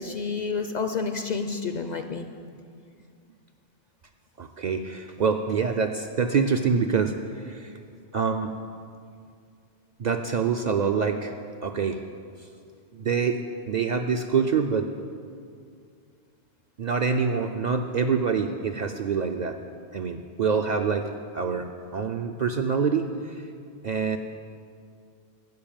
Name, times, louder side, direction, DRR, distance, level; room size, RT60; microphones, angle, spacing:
voice 1, 0.0-2.3, left 4 dB, 50° left, 7 dB, 0.5 m, -29 dB
voice 2, 4.4-7.1 7.4-7.7 8.1-8.5 10.0-11.3 11.6-12.0 12.9-13.4 13.7-14.9 16.8-19.6 19.9-21.1 21.3-21.7 21.9-23.1 23.8-24.2, right 5 dB, 55° right, 5 dB, 0.5 m, -25 dB
12.5 x 5.3 x 8.8 m, 2.3 s
omnidirectional pair, 1.1 m